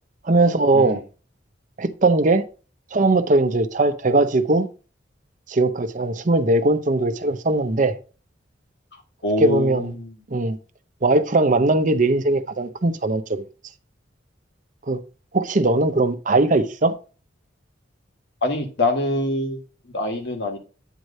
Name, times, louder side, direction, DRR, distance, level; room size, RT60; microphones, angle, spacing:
voice 1, 0.2-1.0 1.8-2.5 2.9-4.7 5.5-7.9 9.4-9.9 10.3-10.6 11.0-13.4 14.9-15.0 15.3-16.9, right 2 dB, 40° right, 0.6 m, -19 dB
voice 2, 9.2-10.2 18.4-20.6, left 2 dB, 60° left, 1.6 m, -25 dB
9.0 x 3.2 x 5.2 m
head